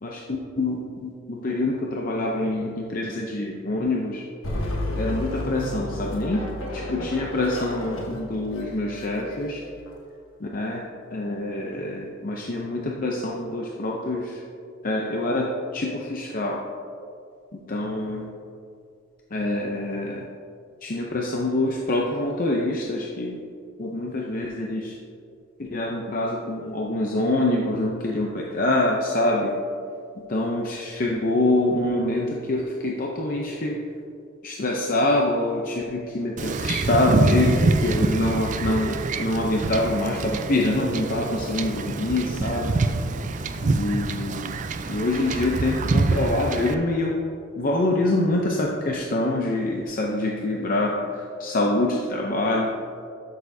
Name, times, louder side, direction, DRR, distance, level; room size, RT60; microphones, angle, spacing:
voice 1, 0.0-4.2 4.9-6.4 6.7-9.6 10.4-10.8 11.1-14.4 14.8-16.6 17.5-18.3 19.3-20.2 20.8-23.4 23.8-25.0 25.6-29.5 30.3-33.8 34.4-42.7 43.6-44.5 44.9-47.2 47.6-52.7, left 2 dB, 45° left, -1 dB, 0.6 m, -25 dB
sound 1, 4.4-9.9, left 1 dB, 85° left, 1.3 m, -32 dB
Wind / Ocean / Boat Water vehicle, 36.4-46.7, right 3 dB, 40° right, 0.4 m, -25 dB
12.5 x 6.6 x 2.7 m, 2.4 s
head